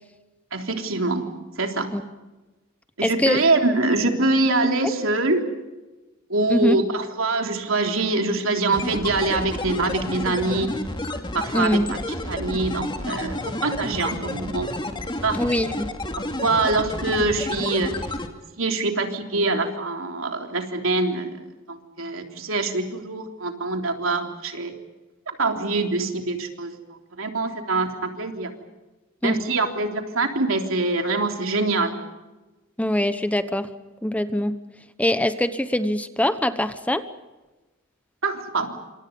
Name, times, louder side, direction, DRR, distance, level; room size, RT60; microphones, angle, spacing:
voice 1, 0.5-1.9 3.0-5.5 6.3-10.8 11.3-13.4 13.6-14.7 15.2-15.4 16.4-18.0 18.6-21.4 21.7-24.7 25.4-26.7 27.2-28.5 29.2-32.0 38.2-38.8, right 3 dB, 75° right, 4 dB, 3.5 m, -24 dB
voice 2, 3.0-3.4 6.5-6.8 11.5-11.9 15.4-15.9 29.2-29.4 32.8-33.7 34.0-34.5 35.0-37.0, left 1 dB, 5° left, 11 dB, 1.0 m, -23 dB
sound 1, 8.7-18.3, left 1 dB, 25° left, 2.6 m, -31 dB
28.0 x 26.5 x 5.4 m, 1.2 s
head